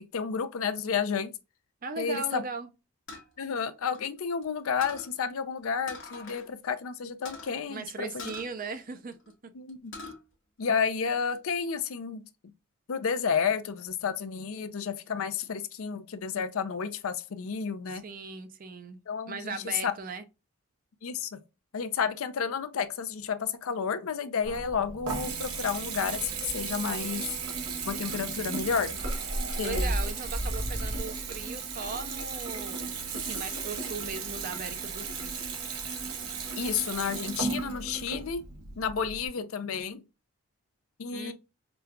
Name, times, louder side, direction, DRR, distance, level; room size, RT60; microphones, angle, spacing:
voice 1, 0.0-1.3 2.0-2.4 3.4-8.3 9.5-9.9 10.6-12.2 12.9-18.0 19.1-19.6 19.8-19.9 21.0-21.3 21.7-27.2 27.9-29.0 29.5-30.0 36.6-38.4 38.8-40.0 41.0-41.3, left 6 dB, 70° left, 0.5 m, -31 dB
voice 2, 1.8-2.7 7.7-9.2 9.4-9.5 17.9-19.0 19.3-20.2 29.6-35.3 41.1-41.3, right 4 dB, 40° right, 0.5 m, -38 dB
sound 1, 3.1-4.4 4.8-5.1 5.9-6.5 6.8-6.9 7.2-7.5 8.2-9.3 9.7-10.2 10.6-11.4, left 3 dB, 55° left, 1.1 m, -44 dB
sound 2, 24.4-31.0, right 1 dB, 60° right, 1.6 m, -36 dB
Water tap faucet / Bathtub (filling or washing) / Trickle dribble, 24.4-39.3, right 5 dB, 85° right, 0.9 m, -36 dB
5.0 x 2.3 x 2.2 m
head